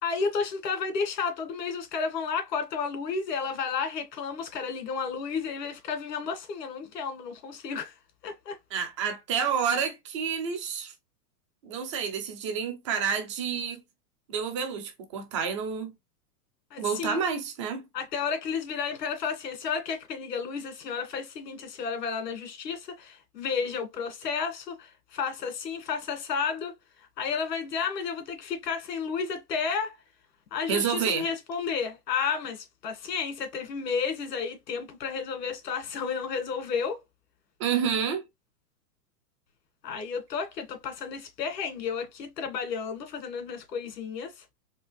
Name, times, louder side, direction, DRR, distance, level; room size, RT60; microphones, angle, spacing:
voice 1, 0.0-7.9 8.2-8.6 16.7-17.2 17.9-30.0 30.5-37.0 39.8-44.4, left 6 dB, 90° left, 2.3 m, -32 dB
voice 2, 8.7-10.9 11.6-13.8 14.3-15.9 16.8-17.8 30.7-31.3 37.6-38.2, right 7 dB, 20° right, 0.4 m, -29 dB
4.4 x 3.3 x 3.4 m
supercardioid pair, 165°, 48 cm